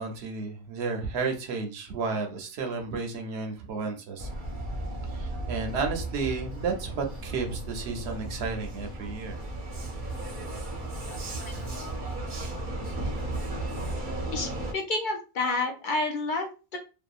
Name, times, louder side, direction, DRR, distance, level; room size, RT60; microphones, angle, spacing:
voice 1, 0.0-4.3 5.1-9.4, right 4 dB, 80° right, 4 dB, 0.9 m, -32 dB
Vehicle, 4.2-14.7, right 1 dB, 55° right, 0.8 m, -35 dB
voice 2, 14.3-16.8, left 2 dB, 60° left, 3 dB, 0.6 m, -30 dB
2.7 x 2.3 x 2.3 m, 0.31 s
omnidirectional pair, 1.1 m